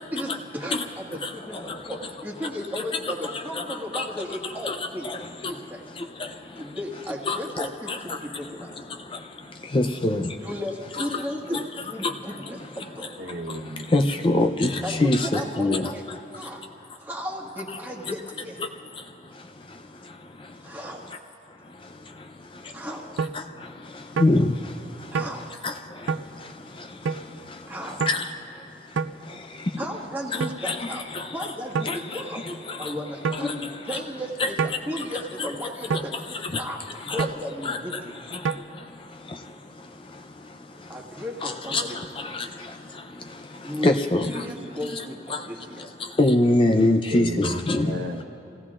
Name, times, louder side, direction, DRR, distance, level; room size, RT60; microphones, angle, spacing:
voice 1, 0.1-5.1 5.4-5.8 6.6-8.8 10.4-13.1 14.8-16.6 17.0-18.6 20.6-21.1 22.7-23.0 25.1-25.5 27.7-28.1 29.8-31.0 31.3-32.5 32.8-36.2 36.6-37.9 40.9-42.0 43.6-44.0 44.3-45.8, equal, 10° right, -3 dB, 1.6 m, -35 dB
voice 2, 7.3-8.0 9.7-10.3 11.0-11.1 12.0-12.1 13.9-15.9 24.2-24.5 25.6-25.7 28.1-28.2 30.6-30.9 31.1-31.2 31.9-32.0 33.4-33.5 33.9-34.0 34.4-34.5 35.4-35.5 36.5-36.6 37.1-37.2 37.6-37.8 41.4-41.8 42.3-42.5 43.8-44.3 45.3-45.4 46.2-47.9, left 2 dB, 25° left, 5 dB, 0.5 m, -22 dB
voice 3, 13.2-14.3 47.1-48.2, right 1 dB, 65° right, 1 dB, 1.1 m, -34 dB
sound 1, 23.2-23.4 24.2-24.4 25.1-25.4 26.1-26.3 27.1-27.2 28.0-28.2 29.0-29.2 30.4-30.6 31.8-32.0 33.2-33.5 34.6-34.8 35.9-36.1 37.2-37.4 38.5-38.6, right 5 dB, 85° right, 0.4 m, -26 dB
30.0 x 17.5 x 2.4 m, 2.6 s
head